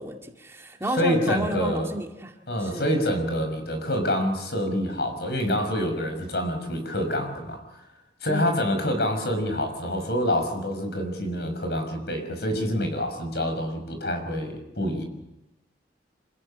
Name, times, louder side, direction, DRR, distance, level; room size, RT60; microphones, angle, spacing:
voice 1, 0.0-2.3 2.6-2.9 8.3-8.6, right 1 dB, 15° right, 2 dB, 2.1 m, -32 dB
voice 2, 1.0-1.9 2.5-7.6 8.2-15.0, equal, 65° left, 6 dB, 6.0 m, -26 dB
27.5 x 16.5 x 8.9 m, 0.91 s
head